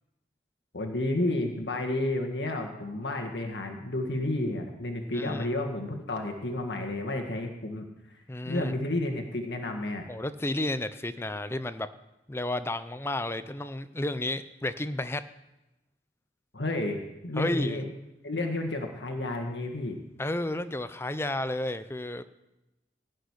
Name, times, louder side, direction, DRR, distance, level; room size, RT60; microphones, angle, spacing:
voice 1, 0.7-10.1 16.5-17.9 18.2-20.0, left 1 dB, 80° left, 4 dB, 1.7 m, -31 dB
voice 2, 5.1-5.5 8.3-8.7 10.1-11.9 12.3-15.2 17.4-17.8 20.2-22.2, left 1 dB, 15° left, 12 dB, 0.6 m, -32 dB
16.5 x 6.5 x 9.8 m, 0.95 s
head